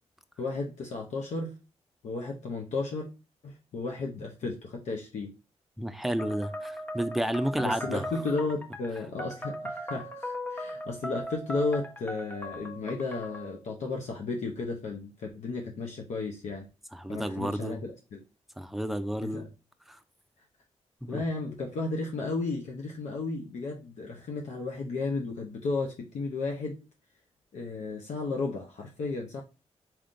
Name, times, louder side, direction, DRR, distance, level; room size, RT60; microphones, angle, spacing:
voice 1, 0.4-1.5 2.0-3.1 3.4-5.3 7.5-16.7 17.1-18.2 19.2-19.5 21.1-26.7 27.5-29.4, left 3 dB, 75° left, 0.6 m, -33 dB
voice 2, 5.8-8.0 16.9-17.8 18.6-19.5 19.9-20.0 21.0-21.2, equal, ahead, 0.5 m, -31 dB
sound 1, 6.2-13.6, equal, 15° left, 0.9 m, -38 dB
4.3 x 3.6 x 2.5 m
cardioid pair, 70°, 12 cm